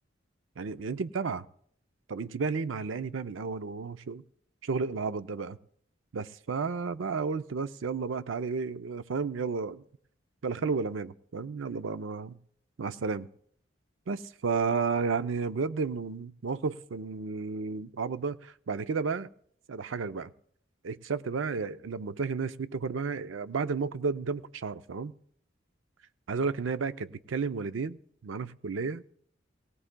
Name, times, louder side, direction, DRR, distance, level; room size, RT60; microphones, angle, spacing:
voice 1, 0.6-1.4 2.1-4.2 4.6-5.6 6.1-9.8 10.4-12.4 12.8-13.3 14.1-19.3 19.7-20.3 20.8-25.1 26.3-29.0, right 4 dB, 85° right, 0.5 m, -32 dB
19.0 x 18.0 x 2.2 m
head